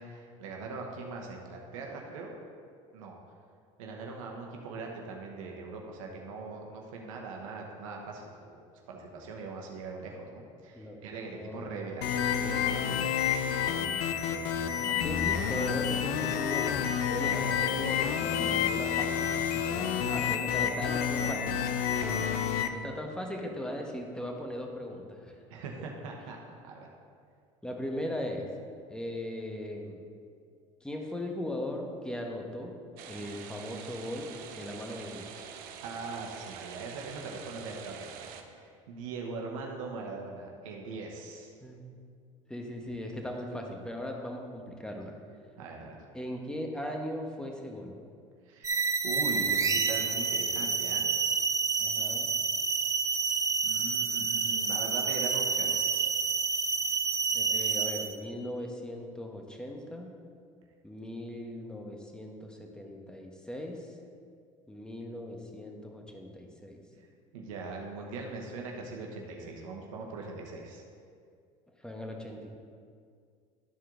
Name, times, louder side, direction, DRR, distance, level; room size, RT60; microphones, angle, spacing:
voice 1, 0.0-2.3 2.9-3.2 3.8-8.6 8.9-12.3 14.7-15.2 17.2-17.4 20.0-21.4 21.9-22.3 25.5-26.9 35.8-41.5 45.6-46.1 48.4-48.7 49.0-51.1 53.6-56.1 67.3-70.8, right 3 dB, 80° right, 0 dB, 1.0 m, -41 dB
voice 2, 11.3-11.9 12.4-13.0 15.0-16.8 17.1-21.6 22.7-25.3 27.6-28.5 28.9-30.0 30.8-32.7 33.0-35.6 41.6-41.8 42.5-45.1 46.1-47.9 51.8-52.3 57.3-60.1 60.8-63.9 64.7-66.8 71.8-72.5, left 1 dB, 5° left, 1 dB, 1.2 m, -38 dB
sound 1, 12.0-22.7, left 8 dB, 65° left, 0.6 m, -29 dB
sound 2, 33.0-38.4, right 7 dB, 60° right, 0.7 m, -46 dB
sound 3, 48.6-58.2, right 5 dB, 20° right, 0.6 m, -29 dB
11.5 x 4.5 x 3.8 m, 2.2 s
hypercardioid pair, 80°, 17 cm